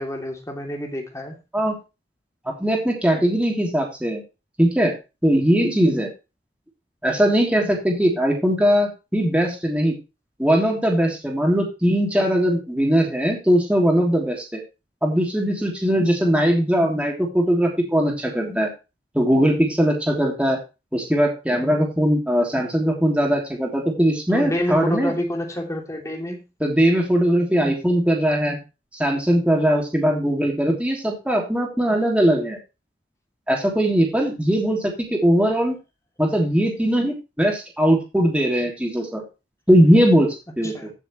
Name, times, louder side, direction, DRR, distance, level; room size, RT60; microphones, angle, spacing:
voice 1, 0.0-1.4 24.3-26.4 40.7-40.9, left 1 dB, 20° left, 2 dB, 2.9 m, -28 dB
voice 2, 2.4-4.2 4.6-4.9 5.2-6.1 7.0-9.9 10.4-14.6 15.0-18.7 19.1-20.6 20.9-25.1 26.6-28.6 28.9-32.6 33.5-35.7 36.2-39.2 39.7-40.9, equal, 5° right, -1 dB, 3.1 m, -20 dB
15.5 x 7.0 x 3.2 m, 0.28 s
head